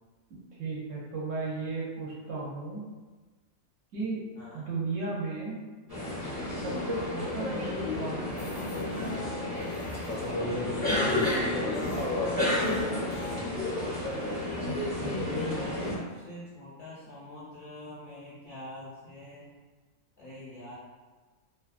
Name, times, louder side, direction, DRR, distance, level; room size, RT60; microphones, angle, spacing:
voice 1, 0.6-2.8 3.9-4.2 4.5-5.6 6.6-8.5 10.9-11.2 14.6-14.8, right 3 dB, 65° right, -5 dB, 0.9 m, -35 dB
sound 1, 5.9-15.9, left 1 dB, 20° right, 0.7 m, -31 dB
sound 2, 8.3-13.4, left 3 dB, 85° left, 1.1 m, -44 dB
voice 2, 11.0-13.2 15.1-19.5 20.2-20.7, left 1 dB, 50° left, -11 dB, 0.6 m, -45 dB
2.6 x 2.3 x 2.4 m, 1.3 s
omnidirectional pair, 1.5 m